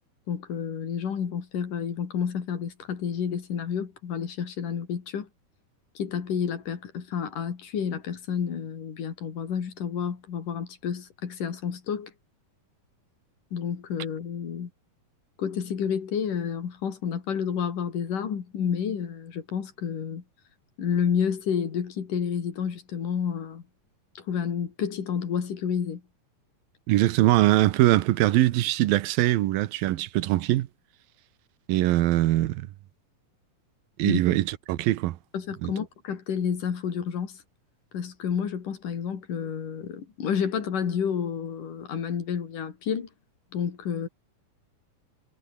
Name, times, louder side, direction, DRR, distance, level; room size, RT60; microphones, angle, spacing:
voice 1, 0.3-5.3 6.0-12.1 13.5-14.7 15.4-20.2 20.8-23.6 24.2-26.0 34.0-34.2 35.3-37.4 37.9-43.1 43.5-44.1, left 7 dB, 65° left, 4.4 m, -30 dB
voice 2, 26.9-30.7 31.7-32.6 34.0-35.2 35.6-35.7, right 16 dB, 90° right, 2.8 m, -22 dB
omnidirectional pair, 4.0 m